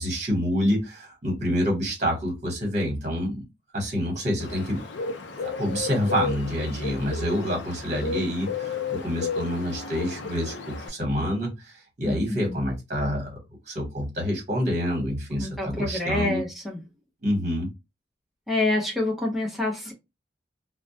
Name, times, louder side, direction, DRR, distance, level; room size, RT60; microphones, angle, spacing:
voice 1, 0.0-3.4 3.7-4.8 5.4-13.4 13.7-16.4 17.2-17.7, equal, 40° right, 1.1 m, -27 dB
Bird, 4.4-10.9, left 5 dB, 75° left, 0.5 m, -33 dB
voice 2, 12.1-12.6 15.4-16.8 18.5-19.9, left 2 dB, ahead, 0.6 m, -27 dB
2.2 x 2.1 x 2.7 m
head